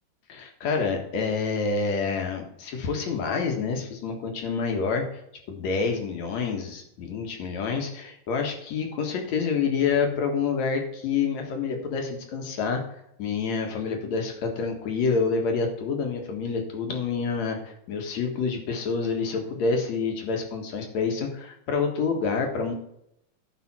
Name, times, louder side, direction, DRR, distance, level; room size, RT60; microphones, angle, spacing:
voice 1, 0.3-5.0 5.5-12.8 13.2-22.7, left 5 dB, 65° left, 3 dB, 2.8 m, -27 dB
12.0 x 5.5 x 4.4 m, 0.77 s
omnidirectional pair, 3.7 m